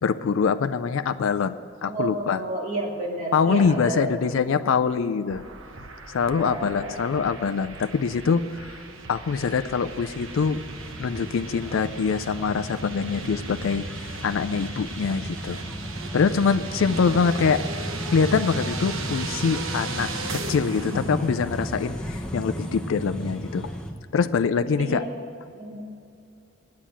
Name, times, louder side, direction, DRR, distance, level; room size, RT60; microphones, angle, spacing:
voice 1, 0.0-2.4 3.3-5.4 6.1-8.8 9.1-10.6 11.0-15.6 16.1-23.7 24.1-25.0, left 5 dB, 70° left, 10 dB, 0.4 m, -24 dB
voice 2, 1.8-4.1 6.4-7.0 24.8-25.1 25.5-25.8, right 2 dB, 35° right, -3 dB, 2.4 m, -31 dB
sound 1, 5.3-22.2, right 3 dB, 70° right, 1.0 m, -36 dB
sound 2, 10.1-23.9, equal, 5° left, 0.9 m, -35 dB
9.2 x 8.5 x 8.7 m, 2.5 s
head